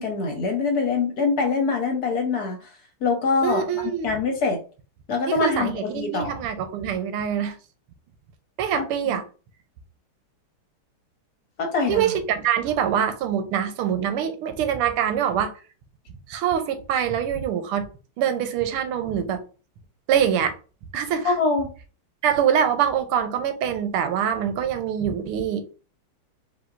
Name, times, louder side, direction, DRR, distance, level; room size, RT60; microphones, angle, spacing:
voice 1, 0.0-2.7 3.0-3.6 4.0-4.6 5.1-6.4 8.8-9.1 11.6-12.0 21.2-21.7, left 4 dB, 55° left, 1.3 m, -24 dB
voice 2, 3.4-4.2 5.3-7.6 8.6-9.2 11.9-15.5 16.3-17.9 18.2-19.4 20.1-20.5 20.9-21.4 22.2-25.6, right 8 dB, 85° right, 1.6 m, -24 dB
5.0 x 3.3 x 2.5 m
omnidirectional pair, 2.4 m